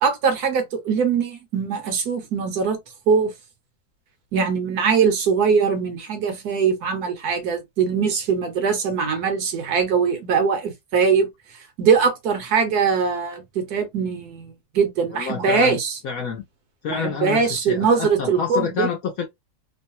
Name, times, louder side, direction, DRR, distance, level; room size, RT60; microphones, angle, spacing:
voice 1, 0.0-2.8 3.1-3.3 4.3-11.3 11.8-16.0 16.9-18.9, right 6 dB, 70° right, 1.1 m, -21 dB
voice 2, 15.1-15.8 16.0-16.4 16.8-19.2, left 6 dB, 70° left, 0.8 m, -28 dB
3.0 x 2.1 x 2.6 m
omnidirectional pair, 1.9 m